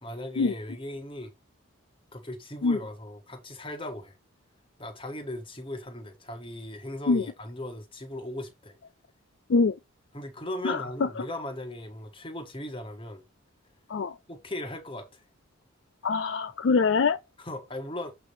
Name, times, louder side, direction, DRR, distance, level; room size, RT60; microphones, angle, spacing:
voice 1, 0.0-1.3 2.1-4.1 4.8-8.8 10.1-13.2 14.3-15.2 17.4-18.1, left 1 dB, 25° left, 1.4 m, -38 dB
voice 2, 10.6-11.1 13.9-14.1 16.0-17.2, left 4 dB, 60° left, 0.4 m, -24 dB
7.7 x 3.4 x 5.5 m
head